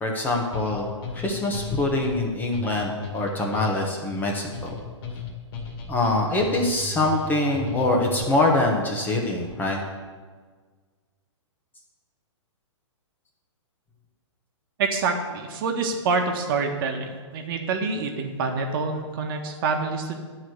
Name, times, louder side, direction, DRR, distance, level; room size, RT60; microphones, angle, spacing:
voice 1, 0.0-4.7 5.9-9.8, left 2 dB, 10° left, 1 dB, 1.1 m, -24 dB
sound 1, 0.5-8.4, left 2 dB, 55° left, 1.9 m, -36 dB
voice 2, 14.8-20.1, right 4 dB, 45° right, 4 dB, 1.3 m, -26 dB
10.0 x 4.7 x 7.9 m, 1.5 s
hypercardioid pair, 150°, 16 cm